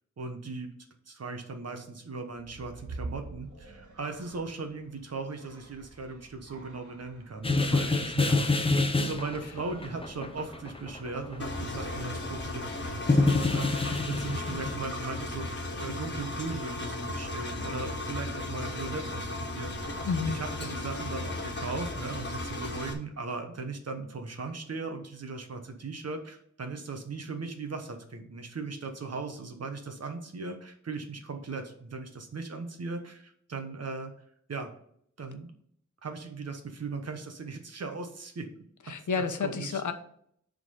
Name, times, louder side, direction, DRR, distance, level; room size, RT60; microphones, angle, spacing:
voice 1, 0.2-0.7 1.1-19.9 20.3-34.1 34.5-34.7 35.2-35.5 36.0-38.5 39.1-39.8, right 3 dB, 55° right, 5 dB, 1.1 m, -38 dB
sound 1, 2.3-21.0, right 2 dB, 75° right, 2.3 m, -50 dB
sound 2, 7.4-12.8 13.1-14.7, left 3 dB, 20° left, 0.7 m, -27 dB
Engine, 11.4-22.9, left 2 dB, 35° left, 1.5 m, -36 dB
voice 2, 20.0-20.4 38.9-39.9, left 5 dB, 80° left, 8 dB, 1.0 m, -30 dB
9.5 x 3.9 x 5.4 m, 0.65 s
wide cardioid pair, 145°, 30 cm